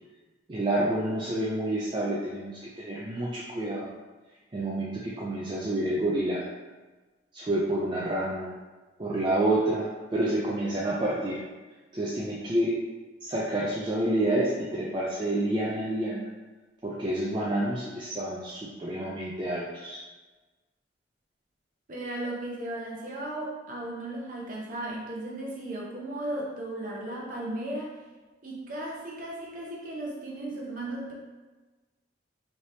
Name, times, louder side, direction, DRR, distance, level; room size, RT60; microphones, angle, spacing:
voice 1, 0.5-3.9 4.5-6.5 7.3-8.5 9.0-11.4 11.9-12.8 13.2-16.3 16.8-20.0, right 1 dB, 25° right, -5 dB, 0.3 m, -28 dB
voice 2, 21.9-27.9 28.4-31.1, right 1 dB, 45° right, -3 dB, 0.7 m, -35 dB
3.2 x 2.8 x 2.7 m, 1.2 s
head